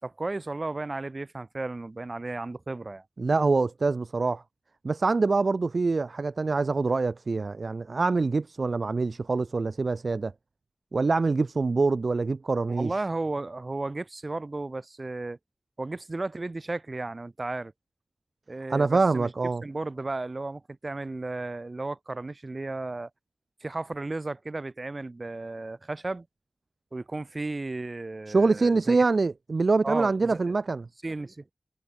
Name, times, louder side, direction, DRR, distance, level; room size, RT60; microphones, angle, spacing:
voice 1, 0.0-3.0 12.7-15.4 15.8-17.7 18.5-19.3 19.6-23.1 23.6-26.3 26.9-29.0 29.8-30.4 31.0-31.4, right 2 dB, 45° right, 7.8 m, -34 dB
voice 2, 3.2-4.4 4.8-10.3 10.9-12.9 18.7-19.6 28.3-30.9, right 3 dB, 70° right, 0.7 m, -25 dB
wide cardioid pair, 70°, 0 cm